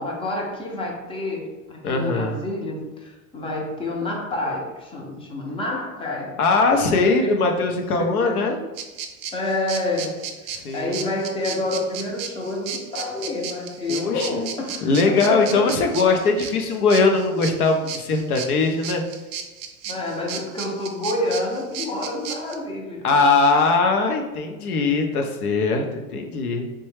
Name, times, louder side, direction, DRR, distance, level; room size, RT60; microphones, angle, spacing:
voice 1, 0.0-6.4 6.8-7.5 8.0-8.5 9.3-15.7 19.8-23.2, left 2 dB, 15° left, -1 dB, 0.4 m, -28 dB
voice 2, 1.8-2.3 6.4-8.6 10.5-11.1 13.9-14.5 14.8-19.0 23.0-26.7, left 3 dB, 90° left, 4 dB, 0.7 m, -21 dB
sound 1, 8.8-22.5, right 7 dB, 65° right, 0.6 m, -34 dB
3.2 x 2.2 x 3.2 m, 1.2 s
hypercardioid pair, 110°, 43 cm